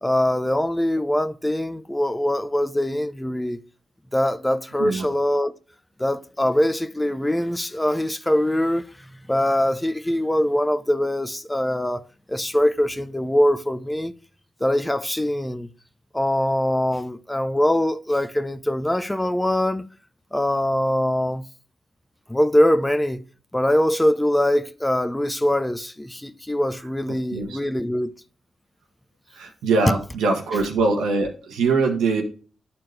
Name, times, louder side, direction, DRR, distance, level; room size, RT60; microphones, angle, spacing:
voice 1, 0.0-3.6 4.1-5.5 6.0-8.8 9.3-12.0 12.3-14.1 14.6-15.7 16.1-19.9 20.3-21.4 22.3-23.2 23.5-28.1, left 1 dB, 10° left, 0.7 m, -22 dB
voice 2, 29.3-32.2, right 4 dB, 85° right, 1.4 m, -22 dB
10.0 x 4.2 x 3.3 m
supercardioid pair, 40°, 0 cm